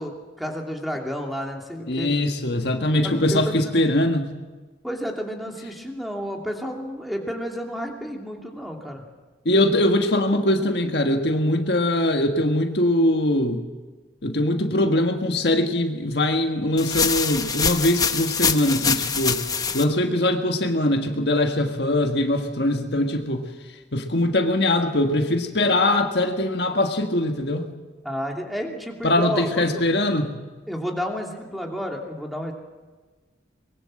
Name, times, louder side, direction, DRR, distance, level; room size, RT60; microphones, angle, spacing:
voice 1, 0.0-2.2 3.0-3.7 4.8-9.0 28.0-29.9 30.7-32.5, equal, ahead, 1 dB, 2.8 m, -31 dB
voice 2, 1.9-4.3 9.4-13.6 14.2-19.4 19.7-23.4 23.9-27.7 29.0-30.3, left 1 dB, 65° left, 5 dB, 1.5 m, -22 dB
sound 1, 16.8-19.8, left 5 dB, 20° left, 1.0 m, -24 dB
23.5 x 21.5 x 7.6 m, 1.3 s
head